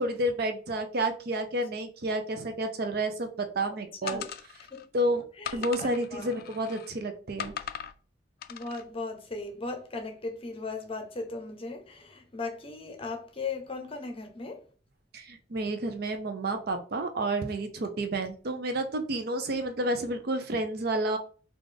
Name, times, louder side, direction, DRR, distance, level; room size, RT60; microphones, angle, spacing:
voice 1, 0.0-4.2 4.9-5.2 5.5-7.5 15.1-21.2, right 1 dB, 60° right, 0.5 m, -30 dB
sound 1, 4.1-4.9 5.4-6.9 7.4-8.0 8.4-8.8, left 9 dB, 55° left, 0.3 m, -39 dB
voice 2, 5.4-6.4 8.5-14.6, left 3 dB, 30° left, 0.7 m, -37 dB
3.9 x 2.4 x 3.3 m
head